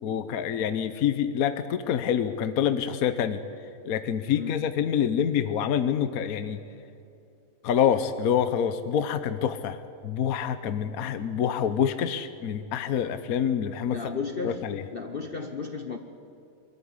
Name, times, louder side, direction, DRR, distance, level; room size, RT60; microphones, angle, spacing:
voice 1, 0.0-3.4 3.8-6.6 7.6-14.0 14.4-14.8, left 8 dB, 65° left, 11 dB, 1.3 m, -26 dB
voice 2, 13.9-14.7 14.9-16.0, left 4 dB, 40° left, 5 dB, 1.1 m, -33 dB
22.5 x 13.5 x 9.7 m, 2.7 s
omnidirectional pair, 1.7 m